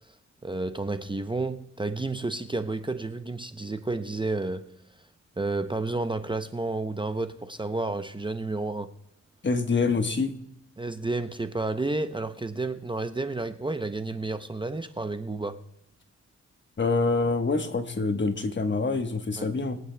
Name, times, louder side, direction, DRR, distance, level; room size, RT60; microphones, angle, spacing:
voice 1, 0.4-4.7 5.4-8.9 10.8-15.6 19.4-19.5, right 2 dB, 15° right, 0.6 m, -31 dB
voice 2, 9.4-10.3 16.8-19.8, left 3 dB, 40° left, 1.2 m, -26 dB
22.0 x 9.0 x 2.2 m
cardioid pair, 60°, 29 cm